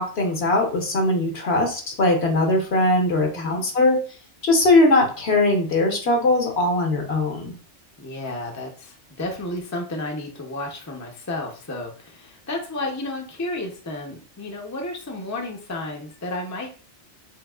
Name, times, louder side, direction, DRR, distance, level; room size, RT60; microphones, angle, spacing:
voice 1, 0.0-4.0 4.4-7.5, left 2 dB, 65° left, 2 dB, 1.2 m, -20 dB
voice 2, 3.2-3.6 8.0-16.8, left 2 dB, 20° left, 1 dB, 0.6 m, -32 dB
4.5 x 3.4 x 2.4 m, 0.38 s
omnidirectional pair, 1.2 m